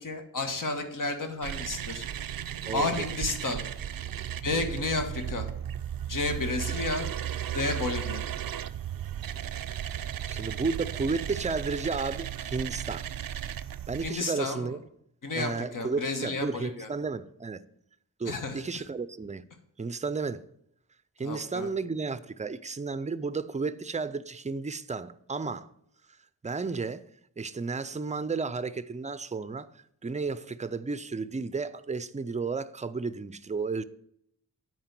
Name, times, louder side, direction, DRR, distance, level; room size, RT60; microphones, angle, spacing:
voice 1, 0.0-2.0 2.7-3.6 4.4-5.5 6.1-7.1 7.5-8.2 14.0-14.7 15.2-16.9 18.2-18.8 21.2-21.7, left 3 dB, 65° left, 1.5 m, -31 dB
sound 1, 1.4-14.1, right 10 dB, 75° right, 0.5 m, -35 dB
voice 2, 2.7-3.1 4.5-4.7 10.3-13.1 13.9-14.8 15.4-17.6 18.2-19.4 19.8-20.4 21.2-25.7 26.4-27.0 27.4-29.7 30.0-33.8, right 4 dB, 20° right, 0.4 m, -33 dB
8.9 x 4.6 x 7.5 m
wide cardioid pair, 100°, 34 cm